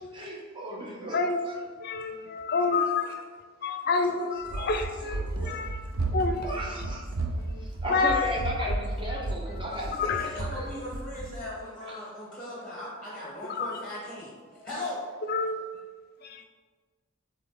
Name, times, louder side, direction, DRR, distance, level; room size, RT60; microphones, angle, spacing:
voice 1, 0.1-1.6 2.7-3.1 3.9-5.6 6.4-7.1 7.6-10.7 11.9-12.0 12.6-12.7, equal, 25° right, -3 dB, 1.0 m, -36 dB
voice 2, 1.1-1.5 1.8-3.1 3.6-5.2 5.5-5.8 6.1-6.5 7.4-8.3 8.6-8.7 9.1-9.3 10.0-10.3 13.6-13.7 15.3-15.6 16.2-16.4, left 4 dB, 50° left, 6 dB, 0.5 m, -28 dB
Run, 4.4-11.5, right 2 dB, 90° right, 0.6 m, -33 dB
voice 3, 9.7-14.3 14.6-15.0, left 1 dB, 5° left, -5 dB, 1.3 m, -38 dB
7.6 x 3.2 x 3.9 m, 1.5 s
head